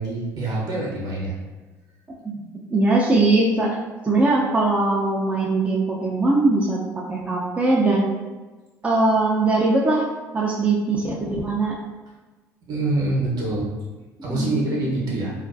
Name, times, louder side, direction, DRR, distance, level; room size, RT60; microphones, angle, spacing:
voice 1, 0.0-1.4 12.7-13.7 14.2-15.3, right 2 dB, 55° right, -3 dB, 0.9 m, -25 dB
voice 2, 2.7-3.8 4.0-6.8 7.1-8.1 8.8-10.0 10.3-11.8 14.3-14.8, right 2 dB, 15° right, -4 dB, 0.5 m, -20 dB
2.4 x 2.2 x 2.5 m, 1.2 s
hypercardioid pair, 60°, 9 cm